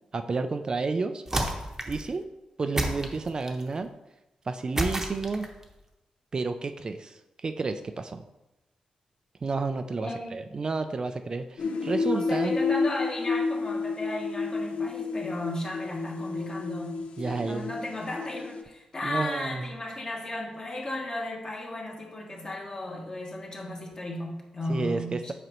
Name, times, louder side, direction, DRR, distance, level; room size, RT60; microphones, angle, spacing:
voice 1, 0.1-1.2 1.9-2.3 2.6-3.9 4.5-5.5 6.3-8.2 9.4-12.6 17.2-17.7 19.0-19.7 24.7-25.3, right 3 dB, 40° right, 8 dB, 0.3 m, -31 dB
sound 1, 1.3-2.1 2.8-3.7 4.8-5.6, right 1 dB, 20° right, 0.9 m, -30 dB
sound 2, 11.6-18.6, left 4 dB, 70° left, 0.5 m, -30 dB
voice 2, 12.1-25.3, left 1 dB, 35° left, 0 dB, 1.4 m, -35 dB
7.8 x 5.0 x 3.0 m, 0.97 s
cardioid pair, 100°, 2 cm